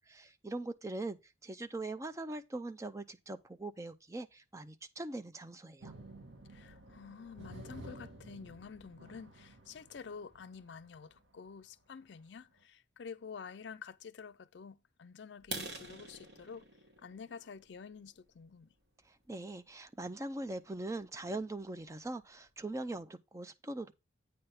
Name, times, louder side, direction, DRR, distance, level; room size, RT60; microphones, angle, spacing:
voice 1, 0.1-5.9 19.1-23.9, right 2 dB, 15° right, 0.5 m, -41 dB
sound 1, 5.8-11.2 12.2-12.3 12.6-12.7, right 1 dB, 75° right, 1.5 m, -52 dB
voice 2, 6.5-16.7 17.0-18.7, left 6 dB, 65° left, 0.4 m, -49 dB
sound 2, 15.4-19.2 19.7-19.9 20.3-20.4 20.9-21.0 21.3-21.4 21.9-22.0 22.2-22.7, right 3 dB, 55° right, 1.6 m, -47 dB
8.8 x 3.4 x 5.7 m
head